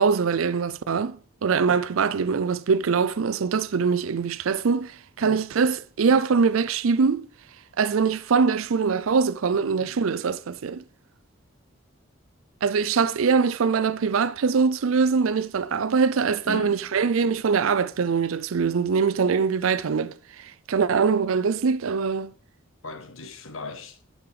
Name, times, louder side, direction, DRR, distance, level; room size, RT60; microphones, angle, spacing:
voice 1, 0.0-7.3 7.8-10.8 12.6-22.3, right 5 dB, 80° right, 0.5 m, -23 dB
voice 2, 9.6-10.0 16.5-16.9 22.8-24.0, left 3 dB, 80° left, 1.1 m, -38 dB
8.5 x 6.5 x 4.8 m
head